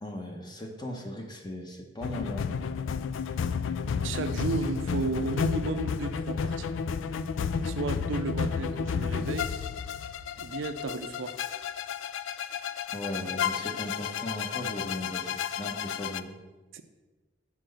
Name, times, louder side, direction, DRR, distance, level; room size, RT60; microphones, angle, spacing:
voice 1, 0.0-2.5 12.9-16.4, left 1 dB, 20° left, 2 dB, 0.9 m, -37 dB
sound 1, 2.0-16.2, left 6 dB, 70° left, 0.3 m, -32 dB
voice 2, 3.9-6.7 7.6-9.5 10.4-11.4 16.7-16.8, right 3 dB, 75° right, 8 dB, 0.5 m, -33 dB
6.0 x 4.4 x 6.5 m, 1.2 s
head